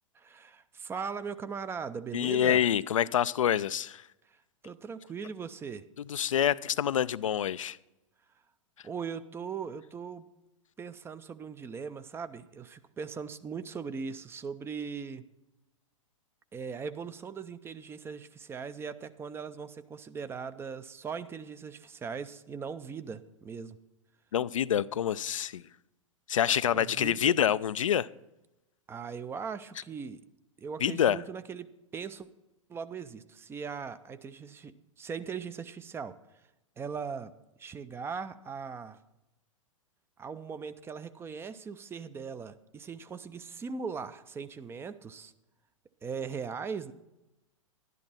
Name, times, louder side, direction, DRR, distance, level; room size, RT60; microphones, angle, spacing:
voice 1, 0.1-2.6 4.6-5.8 8.8-10.2 10.8-15.2 16.5-23.8 26.7-27.3 28.9-30.2 30.6-32.3 32.7-36.2 36.8-37.3 37.6-39.0 40.2-45.3 46.0-46.9, right 6 dB, 15° right, 0.5 m, -39 dB
voice 2, 2.1-4.0 6.1-7.8 24.3-25.6 26.3-28.1 30.8-31.2, left 10 dB, 75° left, 0.4 m, -27 dB
12.0 x 11.0 x 4.2 m
figure-of-eight pair, 105°, 17 cm